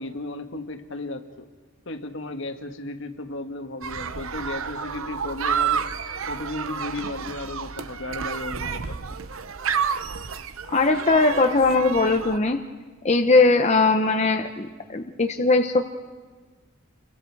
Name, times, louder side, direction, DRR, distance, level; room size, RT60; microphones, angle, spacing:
voice 1, 0.0-1.5 1.8-5.9 6.3-9.0, left 2 dB, 60° left, 7 dB, 1.5 m, -34 dB
sound 1, 3.8-12.4, right 7 dB, 75° right, 0.8 m, -30 dB
voice 2, 10.7-12.6 13.0-15.8, left 3 dB, 30° left, 4 dB, 0.8 m, -20 dB
29.5 x 22.5 x 4.7 m, 1.4 s
head